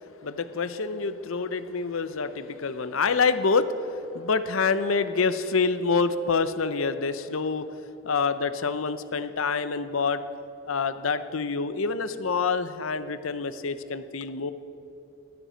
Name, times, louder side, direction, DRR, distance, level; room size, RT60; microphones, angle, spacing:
voice 1, 0.2-3.7 4.1-7.7 8.0-10.2 10.7-14.5, left 4 dB, 80° left, 12 dB, 0.7 m, -26 dB
14.5 x 12.0 x 5.1 m, 2.9 s
head